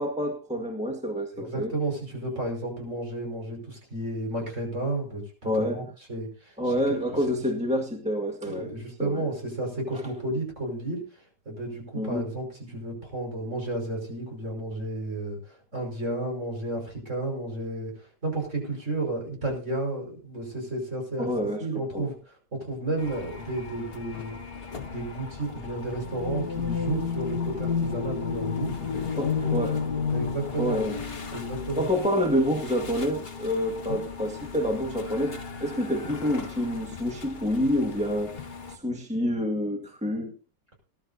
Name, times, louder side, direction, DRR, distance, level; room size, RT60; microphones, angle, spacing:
voice 1, 0.0-1.7 5.4-5.8 6.6-8.7 9.0-9.2 11.9-12.3 21.2-21.6 21.9-22.1 28.9-29.8 30.6-31.0 31.8-38.4 38.7-40.3, equal, 5° right, 2 dB, 1.6 m, -28 dB
voice 2, 1.3-7.2 8.4-21.3 21.6-24.4 24.9-28.8 29.4-29.6 30.1-30.8 31.3-31.9 33.8-34.0, right 2 dB, 40° right, 1 dB, 5.7 m, -32 dB
sound 1, 23.0-38.8, left 5 dB, 35° left, 1.6 m, -40 dB
sound 2, 26.0-32.0, left 5 dB, 65° left, 1.7 m, -30 dB
20.0 x 12.0 x 2.7 m, 0.35 s
omnidirectional pair, 1.9 m